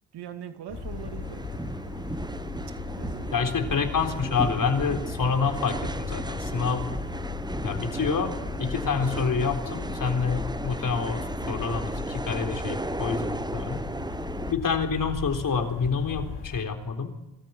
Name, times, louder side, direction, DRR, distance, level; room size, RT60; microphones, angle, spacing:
voice 1, 0.1-1.4 3.0-4.0, right 9 dB, 70° right, 7 dB, 2.5 m, -41 dB
sound 1, 0.7-16.6, left 6 dB, 75° left, 4.8 m, -37 dB
sound 2, 0.7-14.5, right 2 dB, 10° right, 1.0 m, -35 dB
voice 2, 3.3-6.9 7.6-8.3 8.6-13.8 14.5-17.1, left 5 dB, 50° left, 4 dB, 4.0 m, -27 dB
26.0 x 14.0 x 9.5 m, 0.97 s
supercardioid pair, 55°, 41 cm